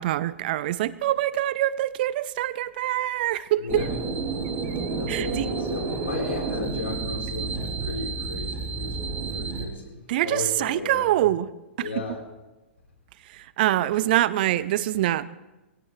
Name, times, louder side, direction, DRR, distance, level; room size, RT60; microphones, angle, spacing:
voice 1, 0.0-3.8 4.6-4.8 5.1-5.5 10.1-11.5 11.8-12.1 13.3-15.3, right 14 dB, 50° right, 18 dB, 0.7 m, -25 dB
voice 2, 3.6-3.9 5.0-9.0 9.3-11.1 11.8-12.2, left 3 dB, 75° left, 0 dB, 4.3 m, -34 dB
sound 1, 3.7-9.7, right 4 dB, 25° right, 3.3 m, -30 dB
23.5 x 17.0 x 3.3 m, 1.1 s
figure-of-eight pair, 110°, 7 cm